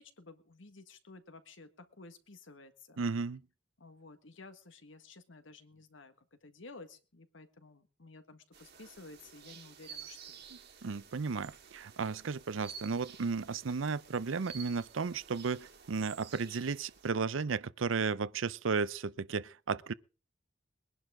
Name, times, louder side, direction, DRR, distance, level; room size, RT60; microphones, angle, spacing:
voice 1, 0.0-3.0 3.8-6.1 6.4-10.4, left 3 dB, 75° left, 1.6 m, -53 dB
voice 2, 3.0-3.4 10.5-19.9, right 5 dB, 85° right, 0.6 m, -34 dB
sound 1, 8.5-17.1, right 7 dB, 60° right, 2.0 m, -52 dB
22.0 x 11.0 x 3.8 m
head